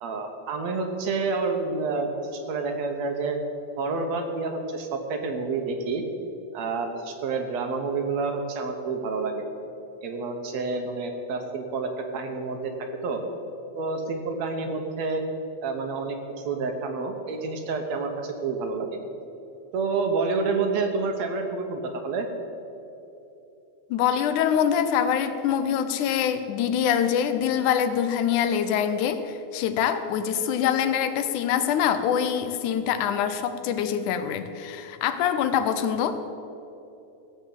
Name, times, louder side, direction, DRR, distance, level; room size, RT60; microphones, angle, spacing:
voice 1, 0.0-3.4 3.8-6.0 6.5-9.4 10.0-12.7 13.0-13.2 13.7-15.2 15.6-16.2 16.4-19.0 19.7-22.3, right 4 dB, 65° right, 5 dB, 2.2 m, -28 dB
voice 2, 23.9-36.2, left 8 dB, 85° left, 10 dB, 2.2 m, -24 dB
15.5 x 7.8 x 7.7 m, 3.0 s
omnidirectional pair, 3.5 m